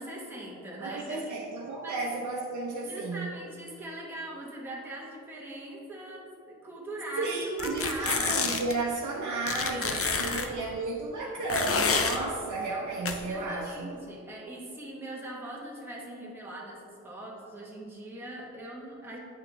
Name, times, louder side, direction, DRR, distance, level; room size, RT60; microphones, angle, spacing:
voice 1, 0.0-1.4 1.8-2.0 2.8-8.4 9.6-10.8 13.2-19.2, right 1 dB, 5° right, -5 dB, 1.2 m, -41 dB
voice 2, 0.8-3.3 7.2-13.9, right 3 dB, 75° right, -3 dB, 0.8 m, -33 dB
sound 1, 7.6-8.7 9.5-10.5 11.5-12.2 13.1-13.2, left 5 dB, 50° left, 0.6 m, -28 dB
8.8 x 6.0 x 3.4 m, 2.5 s
wide cardioid pair, 145°, 30 cm